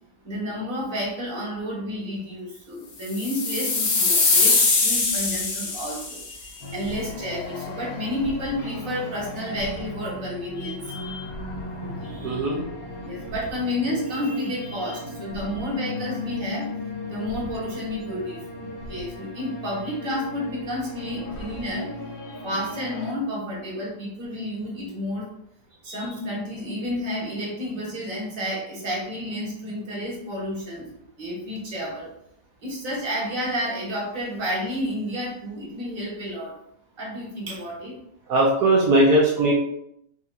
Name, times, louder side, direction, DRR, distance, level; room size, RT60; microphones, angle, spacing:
voice 1, 0.2-11.4 11.8-12.4 13.0-16.7 17.1-18.4 18.9-25.3 25.8-30.9 31.2-32.1 32.6-36.5 37.0-37.9, left 1 dB, 60° right, -5 dB, 1.8 m, -31 dB
sound 1, 3.1-6.3, left 3 dB, 55° left, 0.9 m, -22 dB
sound 2, 6.6-23.1, left 2 dB, 80° left, 1.5 m, -36 dB
voice 2, 12.2-12.6 38.3-39.5, right 1 dB, 75° right, -5 dB, 1.3 m, -19 dB
5.5 x 2.8 x 2.4 m, 0.75 s
omnidirectional pair, 1.7 m